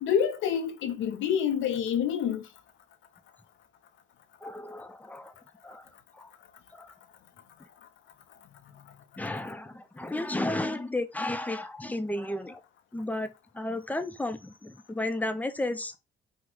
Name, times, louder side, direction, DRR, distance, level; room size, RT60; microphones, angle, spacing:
voice 1, 0.0-2.4, left 8 dB, 75° left, 0.4 m, -27 dB
voice 2, 4.4-5.3 5.6-5.9 6.1-6.3 6.7-6.9 9.2-12.6 12.9-13.3 13.5-15.9, left 1 dB, 10° left, 0.4 m, -33 dB
3.0 x 2.0 x 3.7 m
cardioid pair, 90°, 20 cm